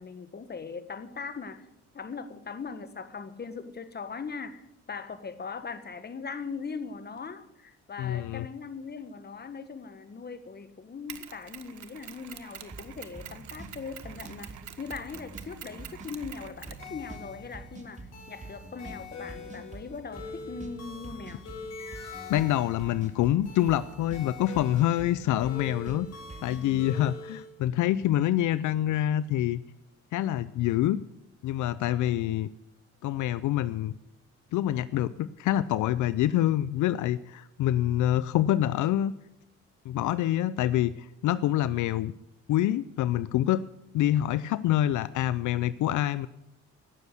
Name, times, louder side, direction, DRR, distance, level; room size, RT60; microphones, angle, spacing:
voice 1, 0.0-1.7 1.9-21.4, left 5 dB, 35° left, 11 dB, 1.4 m, -40 dB
voice 2, 8.0-8.5 22.3-26.1 26.4-29.6 30.1-31.0 31.4-32.5 33.0-33.9 34.5-39.1 39.9-42.1 42.5-43.7 43.9-46.3, left 13 dB, 75° left, 17 dB, 0.5 m, -26 dB
Mechanisms, 11.1-17.4, right 10 dB, 70° right, 1.2 m, -46 dB
sound 1, 12.7-26.7, right 3 dB, 25° right, 2.2 m, -46 dB
sound 2, 16.8-27.5, left 4 dB, 60° left, 6.0 m, -44 dB
17.5 x 7.0 x 8.1 m, 0.85 s
cardioid pair, 90°, 30 cm